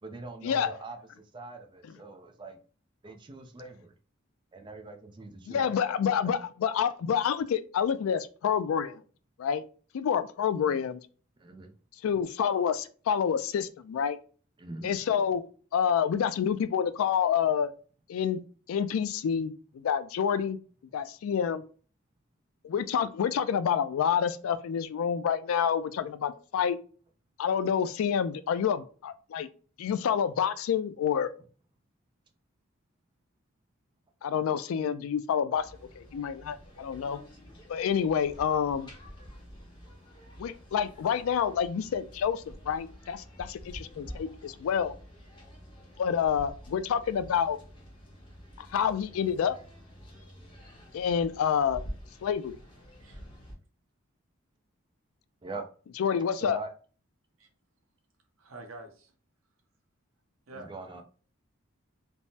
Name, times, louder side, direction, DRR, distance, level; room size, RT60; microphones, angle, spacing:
voice 1, 0.0-2.6 3.0-3.9 4.5-5.7 6.2-6.3 10.7-10.8 11.4-11.7 14.6-15.0 55.4-55.7 56.4-56.7 60.5-61.0, right 3 dB, 20° right, 0.4 m, -43 dB
voice 2, 5.5-9.0 9.4-9.6 9.9-11.0 12.0-14.2 14.8-15.4 15.7-17.7 18.1-18.4 18.7-20.6 20.9-21.6 22.6-26.8 27.4-29.5 29.8-31.3 34.2-35.7 36.0-37.2 37.7-38.9 40.4-44.9 46.0-47.6 48.6-49.6 50.9-51.8 52.2-52.6 56.0-56.6, left 7 dB, 80° left, 0.3 m, -28 dB
sound 1, 35.5-53.5, equal, 25° left, 0.8 m, -48 dB
voice 3, 58.4-59.1 60.5-61.0, right 2 dB, 75° right, 0.7 m, -47 dB
3.4 x 2.0 x 2.7 m
head